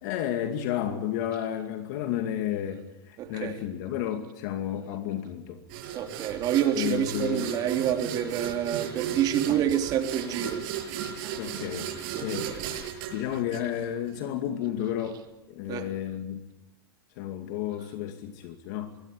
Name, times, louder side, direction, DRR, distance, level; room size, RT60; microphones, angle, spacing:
voice 1, 0.0-5.6 6.7-7.5 11.4-11.9 12.2-12.6 13.1-15.2 15.5-16.4 17.2-19.0, left 10 dB, 55° left, 2.3 m, -32 dB
voice 2, 3.2-3.6 5.9-10.6 11.2-11.3 12.1-12.6 15.7-15.8, right 10 dB, 35° right, 3.2 m, -28 dB
sound 1, 5.7-14.2, right 9 dB, 55° right, 7.2 m, -35 dB
23.5 x 17.5 x 9.7 m
supercardioid pair, 155°, 12 cm